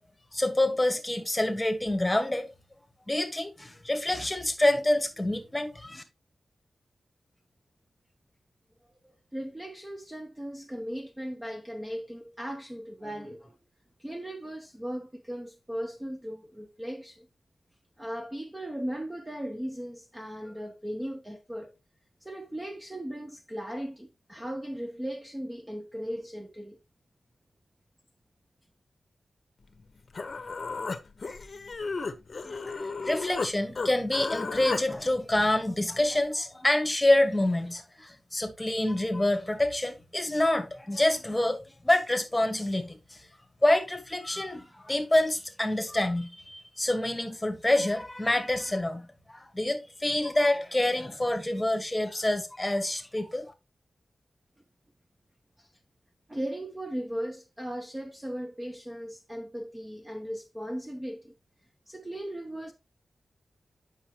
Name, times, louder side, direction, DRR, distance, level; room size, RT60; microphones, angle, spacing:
voice 1, 0.3-2.5 3.1-6.0 32.4-43.2 43.6-53.5, left 1 dB, 10° left, 1.3 m, -27 dB
voice 2, 9.0-13.6 14.0-17.3 18.0-21.7 22.2-26.8 55.6-55.7 56.3-61.3 61.9-62.7, equal, 15° right, 0.7 m, -37 dB
Human voice, 29.8-29.9 30.1-33.5 33.8-34.8, left 4 dB, 45° left, 0.8 m, -33 dB
8.7 x 5.7 x 2.9 m
wide cardioid pair, 120°, 0 cm